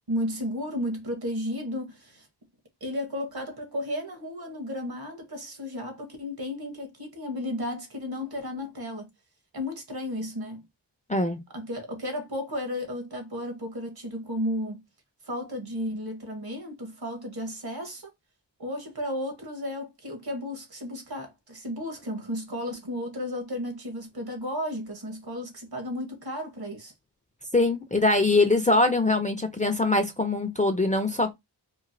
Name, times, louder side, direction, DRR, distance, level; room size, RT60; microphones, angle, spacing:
voice 1, 0.1-2.3 2.8-9.1 9.5-10.6 11.5-14.8 15.2-18.1 18.6-26.9, left 1 dB, 55° right, 1.1 m, -33 dB
voice 2, 27.5-31.3, left 2 dB, 20° left, 0.4 m, -23 dB
3.0 x 2.4 x 2.6 m
wide cardioid pair, 70°, 43 cm